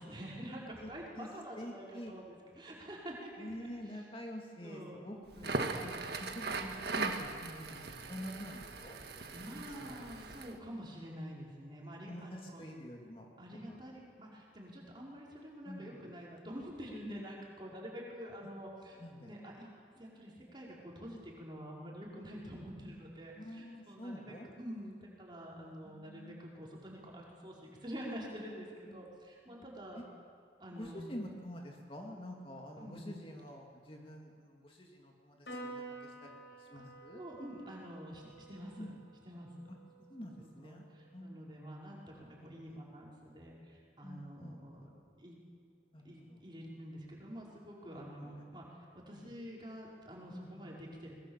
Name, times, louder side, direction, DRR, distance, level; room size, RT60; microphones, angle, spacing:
voice 1, 0.0-4.0 4.6-5.0 5.3-6.0 9.3-12.6 13.4-30.0 30.6-31.0 32.8-33.2 36.8-36.9 37.1-38.9 39.2-39.5 40.2-44.9 45.2-45.4 46.0-51.1, equal, 25° right, -4 dB, 5.2 m, -47 dB
voice 2, 1.6-2.1 3.4-9.0 9.8-9.9 12.1-13.3 13.7-13.8 15.7-16.1 18.4-18.5 19.0-19.4 23.4-24.5 25.6-26.4 28.9-29.0 29.5-29.6 29.9-30.0 30.7-37.2 38.8-39.0 40.1-40.8 41.1-41.7 42.4-42.8 44.0-44.6 45.9-46.4 47.9-48.4 49.1-49.3 50.3-50.8, equal, 30° left, 0 dB, 2.4 m, -47 dB
Crackle, 5.3-10.6, right 3 dB, 70° right, 1.7 m, -39 dB
Piano, 35.5-42.1, right 2 dB, 80° left, 6.9 m, -51 dB
24.5 x 21.5 x 7.4 m, 2.1 s
head